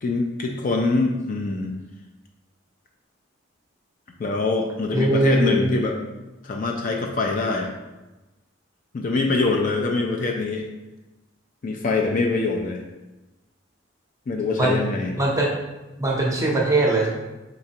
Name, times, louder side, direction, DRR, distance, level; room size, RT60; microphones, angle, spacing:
voice 1, 0.0-1.7 4.2-5.9 6.4-7.7 8.9-10.7 11.6-12.8 14.3-15.1, left 3 dB, 40° left, 2 dB, 0.3 m, -24 dB
voice 2, 4.9-5.7 14.6-14.8 15.2-15.5 16.0-17.1, right 2 dB, 15° right, -2 dB, 0.6 m, -21 dB
3.9 x 3.3 x 2.8 m, 1.1 s
head